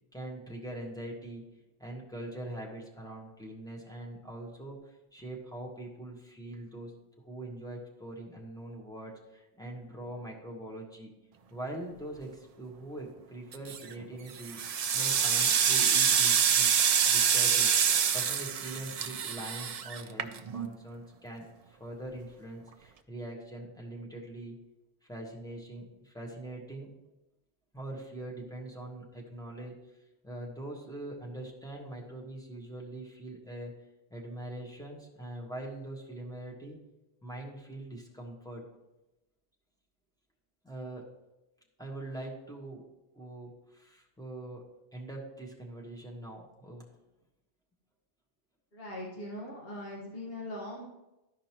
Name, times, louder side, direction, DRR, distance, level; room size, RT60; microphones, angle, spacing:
voice 1, 0.1-1.4 1.8-6.9 7.2-11.1 11.5-14.6 14.9-16.7 17.0-17.7 18.1-24.6 25.1-27.0 27.7-29.7 30.2-33.7 34.1-36.8 37.2-38.6 40.6-41.1 41.8-42.8 43.1-44.6 44.9-46.9, right 1 dB, 5° left, -3 dB, 1.3 m, -42 dB
sound 1, 13.5-13.9 14.4-20.7, right 7 dB, 55° right, 0.4 m, -26 dB
voice 2, 48.7-50.9, left 1 dB, 70° left, -5 dB, 1.8 m, -40 dB
13.0 x 5.1 x 3.0 m, 0.97 s
omnidirectional pair, 1.1 m